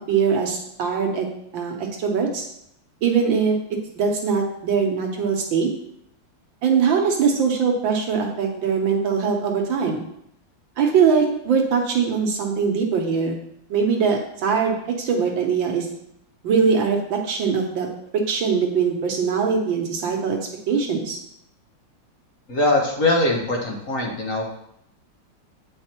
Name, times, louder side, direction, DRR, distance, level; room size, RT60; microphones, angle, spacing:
voice 1, 0.1-1.3 1.5-2.4 3.0-3.6 4.0-5.7 6.6-10.0 10.8-13.4 13.7-15.9 16.4-17.9 18.1-20.4 20.7-21.2, right 6 dB, 85° right, 1 dB, 1.9 m, -21 dB
voice 2, 22.5-24.5, left 2 dB, 45° left, -1 dB, 1.5 m, -21 dB
8.8 x 5.2 x 3.0 m, 0.74 s
omnidirectional pair, 2.0 m